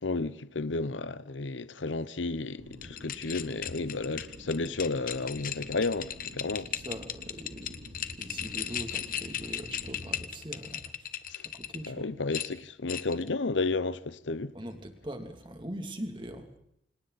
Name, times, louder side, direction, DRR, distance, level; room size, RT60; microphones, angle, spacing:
voice 1, 0.0-6.7 11.3-11.4 11.9-14.5, left 3 dB, 90° left, 0.9 m, -32 dB
sound 1, 2.6-10.2, equal, 70° right, 3.6 m, -50 dB
sound 2, 2.7-11.9 12.3-13.3, left 10 dB, 45° left, 1.3 m, -37 dB
voice 2, 6.7-7.7 8.2-10.9 11.5-12.2 14.5-16.5, equal, 25° right, 2.8 m, -41 dB
29.5 x 26.5 x 4.2 m
head